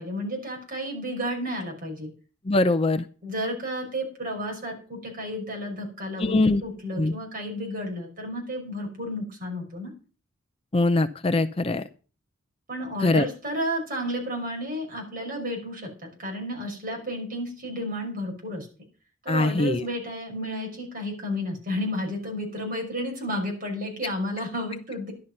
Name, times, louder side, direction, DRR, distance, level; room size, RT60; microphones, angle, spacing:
voice 1, 0.0-2.1 3.2-9.9 12.7-18.7 19.2-25.1, equal, 40° right, 1 dB, 5.7 m, -32 dB
voice 2, 2.5-3.0 6.2-6.6 7.0-7.1 10.7-11.8 13.0-13.3 19.3-19.8, left 2 dB, 25° left, 10 dB, 0.5 m, -22 dB
12.0 x 11.5 x 5.5 m, 0.37 s
head